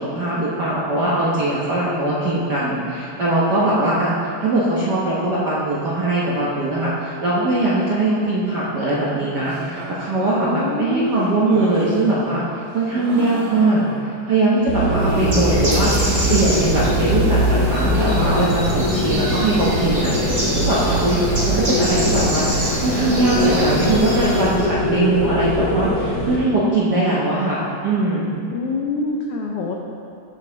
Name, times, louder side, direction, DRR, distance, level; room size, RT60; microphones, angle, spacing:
voice 1, 0.0-4.1 4.4-22.5 22.8-28.4, right 2 dB, 60° right, -7 dB, 1.1 m, -21 dB
sound 1, 9.3-14.3 14.7-17.1 17.4-18.9 19.2-19.3 19.5-19.6 20.2-20.7 21.7-22.3 22.7-25.1, right 2 dB, 75° right, 2.6 m, -34 dB
voice 2, 10.5-11.3 28.5-29.8, left 3 dB, 85° left, 0 dB, 1.2 m, -25 dB
sound 2, 14.7-26.4, left 1 dB, 40° left, 1.5 m, -22 dB
Bird, 15.0-24.6, right 1 dB, 20° right, 2.4 m, -24 dB
14.5 x 5.3 x 3.9 m, 2.5 s
omnidirectional pair, 3.3 m